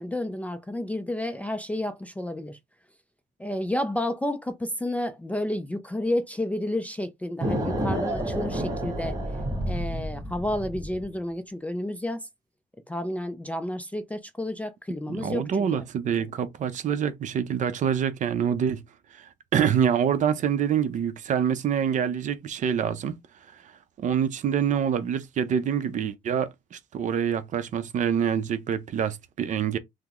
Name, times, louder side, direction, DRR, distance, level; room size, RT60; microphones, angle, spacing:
voice 1, 0.0-2.6 3.4-9.2 9.6-12.3 12.9-15.8, left 1 dB, 10° left, 0.3 m, -31 dB
sound 1, 7.4-11.1, right 1 dB, 20° right, 1.2 m, -30 dB
voice 2, 15.1-18.8 19.1-23.2 24.0-29.8, right 8 dB, 45° right, 0.5 m, -26 dB
3.5 x 2.0 x 2.9 m
cardioid pair, 110°, 17 cm